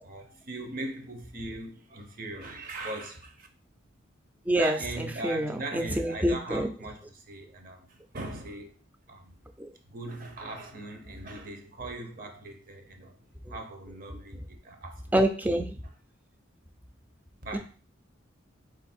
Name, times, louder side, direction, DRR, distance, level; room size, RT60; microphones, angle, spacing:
voice 1, 0.0-3.5 4.6-8.8 9.1-9.4 9.9-13.1 13.5-15.1 17.4-17.6, right 2 dB, 45° right, 0.7 m, -39 dB
voice 2, 4.5-6.7 9.6-9.7 13.5-13.6 15.1-15.7 17.5-17.6, right 1 dB, 10° right, 0.4 m, -27 dB
4.1 x 2.5 x 4.2 m
head